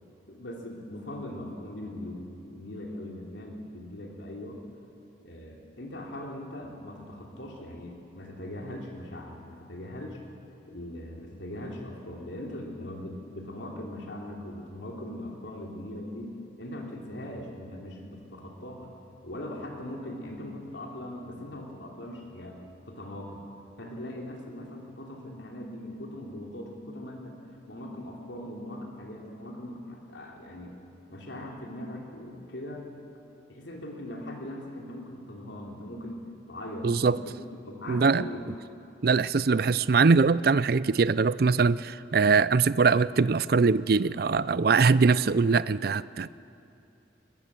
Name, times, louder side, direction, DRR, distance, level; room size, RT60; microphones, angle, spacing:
voice 1, 0.3-4.6 5.2-10.2 10.7-18.9 19.2-23.4 23.8-27.4 27.7-30.8 31.1-32.9 33.5-38.5 39.5-39.7, left 1 dB, 70° left, 0 dB, 3.2 m, -40 dB
voice 2, 36.8-37.2 37.9-38.3 39.0-46.3, right 4 dB, 50° right, 17 dB, 0.4 m, -22 dB
21.5 x 20.5 x 7.5 m, 2.7 s
head